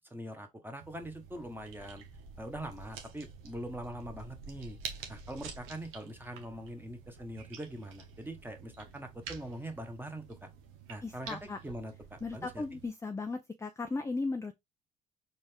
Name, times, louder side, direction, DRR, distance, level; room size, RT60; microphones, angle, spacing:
voice 1, 0.1-2.0 2.4-4.8 5.1-10.5 10.9-12.6, right 1 dB, 10° right, 1.2 m, -43 dB
sound 1, 0.8-12.9, right 6 dB, 75° right, 0.9 m, -49 dB
voice 2, 11.0-11.6 12.2-14.6, left 3 dB, 15° left, 0.5 m, -36 dB
4.1 x 2.6 x 3.4 m
supercardioid pair, 60°, 20 cm